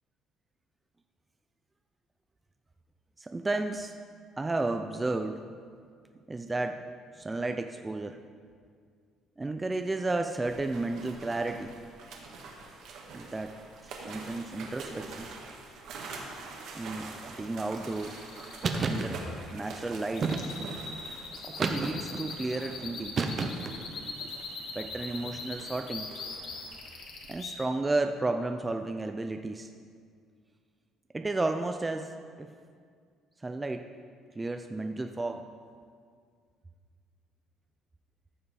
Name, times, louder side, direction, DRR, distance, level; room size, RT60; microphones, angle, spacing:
voice 1, 3.2-4.0 4.4-5.4 6.3-6.8 7.1-8.2 9.4-11.7 13.1-13.5 13.8-15.3 16.7-18.2 18.8-19.2 19.5-20.3 21.4-24.3 24.7-26.1 27.3-29.7 31.1-32.1 32.4-32.5 33.4-33.8 34.4-35.5, right 2 dB, 15° right, 5 dB, 0.4 m, -33 dB
sound 1, 10.4-27.3, right 3 dB, 70° right, 1.5 m, -46 dB
sound 2, 17.8-27.5, left 4 dB, 60° left, 1.5 m, -41 dB
sound 3, 18.6-19.1 20.2-20.8 21.6-22.2 23.1-23.8, right 4 dB, 35° right, 0.7 m, -30 dB
14.5 x 5.6 x 4.2 m, 2.1 s
cardioid pair, 125°, 0 cm